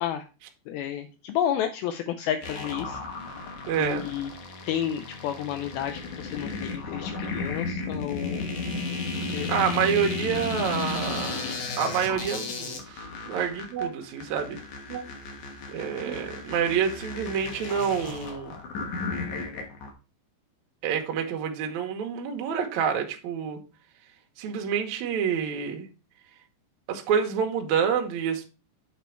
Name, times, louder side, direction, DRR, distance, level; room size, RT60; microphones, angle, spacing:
voice 1, 0.7-3.0 3.8-4.3 4.7-8.5 9.3-9.6, left 10 dB, 85° left, 2.1 m, -31 dB
sound 1, 2.4-19.9, left 4 dB, 60° left, 2.1 m, -34 dB
voice 2, 3.7-4.1 9.5-14.6 14.9-15.1 15.7-18.6 20.8-23.6 24.4-25.9 26.9-28.4, right 7 dB, 90° right, 1.6 m, -28 dB
8.3 x 4.2 x 4.5 m
omnidirectional pair, 4.9 m